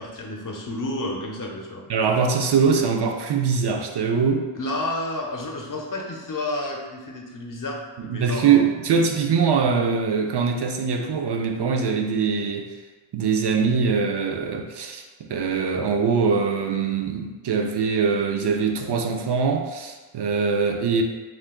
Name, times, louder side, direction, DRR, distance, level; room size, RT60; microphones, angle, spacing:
voice 1, 0.0-1.8 4.5-8.7, left 1 dB, 40° left, 0 dB, 0.7 m, -31 dB
voice 2, 1.9-4.5 8.1-12.7 13.1-15.0 15.3-21.0, right 5 dB, 55° right, 3 dB, 0.5 m, -22 dB
2.4 x 2.4 x 3.6 m, 1.3 s
cardioid pair, 45°, 49 cm